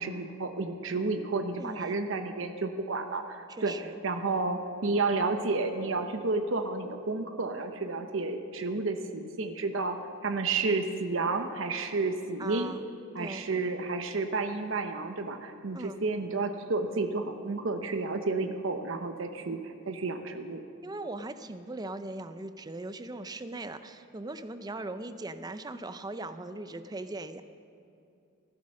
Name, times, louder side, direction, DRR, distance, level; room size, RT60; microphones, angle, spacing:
voice 1, 0.0-3.7 4.0-10.0 10.2-12.7 13.1-20.6, right 3 dB, 70° right, 6 dB, 0.9 m, -31 dB
voice 2, 1.6-2.0 3.5-4.0 12.4-12.9 13.2-13.4 15.7-16.0 20.8-27.4, right 2 dB, 20° right, 10 dB, 0.5 m, -39 dB
15.0 x 11.5 x 6.4 m, 2.6 s
head